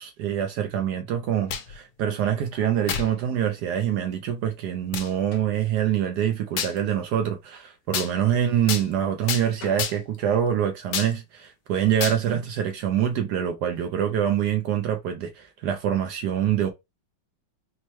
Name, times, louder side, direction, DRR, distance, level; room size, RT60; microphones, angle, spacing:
voice 1, 0.0-16.7, right 9 dB, 75° right, 0.9 m, -25 dB
sound 1, 1.3-1.8 2.9-3.1 3.8-3.9 4.9-5.1 6.6-6.8 7.9-8.1 8.7-8.9 9.3-9.5 9.8-10.2 10.9-11.1 12.0-12.2, left 8 dB, 75° left, 1.3 m, -29 dB
sound 2, 5.3-5.6 9.3-9.4 9.6-10.0, left 2 dB, 55° left, 1.1 m, -45 dB
4.4 x 2.1 x 3.0 m
omnidirectional pair, 2.3 m